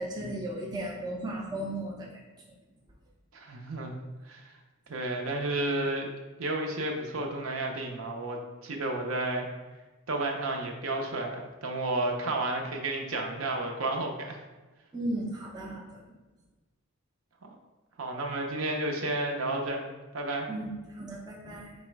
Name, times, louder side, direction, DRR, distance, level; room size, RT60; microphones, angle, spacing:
voice 1, 0.0-2.1 14.9-16.0 20.5-21.7, right 1 dB, 20° right, -2 dB, 0.5 m, -35 dB
voice 2, 3.3-4.0 4.2-4.5 4.9-6.1 6.4-9.5 10.1-14.4 17.4-17.5 18.0-19.9 20.1-20.5, right 2 dB, 65° right, 1 dB, 0.6 m, -32 dB
4.6 x 2.0 x 4.5 m, 1.2 s
head